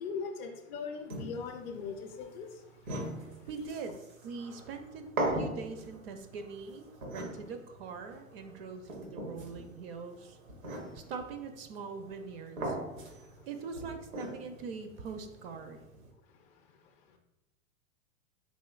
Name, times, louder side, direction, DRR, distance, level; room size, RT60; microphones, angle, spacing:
voice 1, 0.0-2.5, left 5 dB, 40° left, 0.5 m, -39 dB
sound 1, 1.1-16.1, right 1 dB, 90° right, 1.0 m, -41 dB
voice 2, 3.5-4.0 4.2-10.4 10.9-12.8 13.5-15.8, right 5 dB, 50° right, 0.5 m, -42 dB
4.2 x 2.9 x 2.3 m
hypercardioid pair, 105°, 40 cm